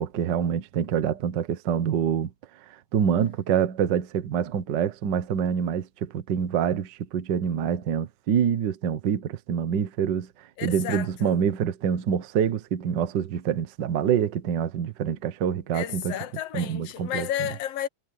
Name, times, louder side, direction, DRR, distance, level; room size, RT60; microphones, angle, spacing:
voice 1, 0.0-2.3 2.7-10.3 10.6-16.1 16.5-17.5, right 8 dB, 60° right, 1.1 m, -26 dB
voice 2, 10.6-11.4 15.7-17.9, left 11 dB, 65° left, 1.6 m, -32 dB
omnidirectional pair, 3.6 m